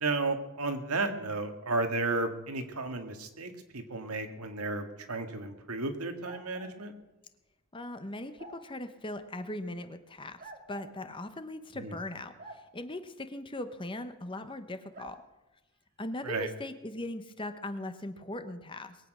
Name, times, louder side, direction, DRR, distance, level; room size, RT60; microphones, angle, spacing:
voice 1, 0.0-6.9 11.8-12.0 16.2-16.5, right 3 dB, 85° right, 6 dB, 1.9 m, -33 dB
sound 1, 6.2-6.8 8.4-8.6 10.4-10.9 12.4-12.6 14.9-15.2, right 1 dB, 40° right, 2.1 m, -47 dB
voice 2, 7.7-15.2 16.0-19.0, left 1 dB, 20° left, 9 dB, 0.9 m, -39 dB
21.5 x 8.7 x 6.2 m, 1.0 s
head